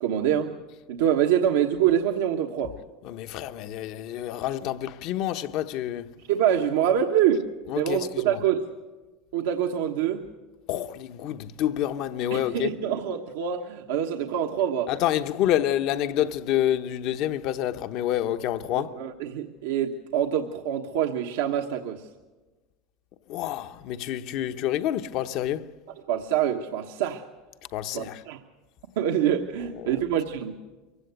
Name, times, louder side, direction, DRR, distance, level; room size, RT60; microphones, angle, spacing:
voice 1, 0.0-0.5 0.9-2.7 6.3-7.5 7.7-8.7 9.3-10.2 12.3-14.9 18.9-22.1 26.1-27.2 27.9-28.4 29.0-30.5, right 9 dB, 85° right, 1.2 m, -25 dB
voice 2, 3.0-6.1 7.7-8.4 10.7-12.7 14.9-18.9 23.3-25.7 27.7-28.2 29.9-30.0, left 12 dB, 60° left, 0.9 m, -28 dB
23.5 x 16.5 x 8.1 m
supercardioid pair, 115°, 0 cm